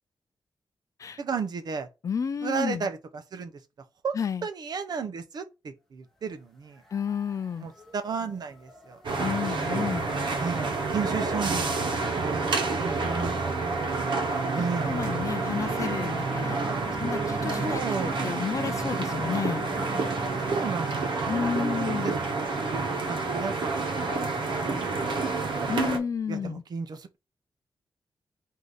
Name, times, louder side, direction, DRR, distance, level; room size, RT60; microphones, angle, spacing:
voice 1, 1.2-1.9 2.4-3.5 4.0-4.2 4.4-6.8 7.6-9.0 10.4-13.8 14.5-15.1 17.6-18.4 20.5-21.0 21.7-22.6 23.1-25.9 26.3-27.2, right 5 dB, 55° right, 0.7 m, -34 dB
voice 2, 2.0-2.9 4.1-4.5 6.9-7.7 9.2-10.1 11.5-11.8 14.5-17.8 18.2-19.6 21.3-22.2 25.7-26.6, left 6 dB, 40° left, 0.4 m, -31 dB
sound 1, 6.2-6.3 6.5-16.8, equal, 5° left, 0.9 m, -47 dB
sound 2, 9.0-26.0, right 3 dB, 75° right, 1.1 m, -29 dB
Singing, 13.8-22.7, right 4 dB, 35° right, 1.3 m, -37 dB
3.8 x 2.7 x 4.8 m
wide cardioid pair, 145°, 8 cm